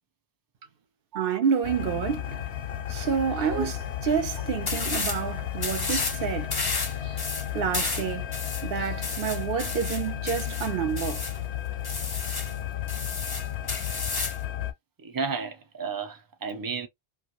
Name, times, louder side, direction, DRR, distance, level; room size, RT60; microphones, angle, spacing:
voice 1, 1.1-2.4 2.9-3.7 4.1-6.5 6.8-7.1 7.5-8.2 8.6-11.2, right 7 dB, 70° right, 0.8 m, -28 dB
sound 1, 1.6-14.7, left 11 dB, 85° left, 0.8 m, -33 dB
sound 2, 4.7-5.2 5.6-6.2 6.5-11.4 11.8-12.5 12.9-14.4, left 3 dB, 30° left, 0.5 m, -32 dB
voice 2, 15.0-16.9, right 5 dB, 25° right, 0.5 m, -32 dB
2.5 x 2.4 x 3.0 m
omnidirectional pair, 1.0 m